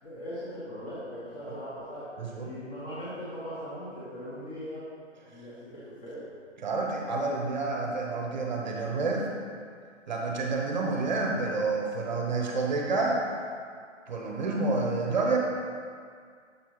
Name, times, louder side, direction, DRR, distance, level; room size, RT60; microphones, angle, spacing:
voice 1, 0.0-2.1 2.4-4.8 5.2-6.3, equal, 30° left, -11 dB, 1.3 m, -39 dB
voice 2, 2.2-2.5 6.6-9.3 10.1-13.2 14.1-15.4, right 3 dB, 40° right, 0 dB, 0.7 m, -29 dB
6.8 x 4.7 x 3.0 m, 2.1 s
figure-of-eight pair, 150°, 37 cm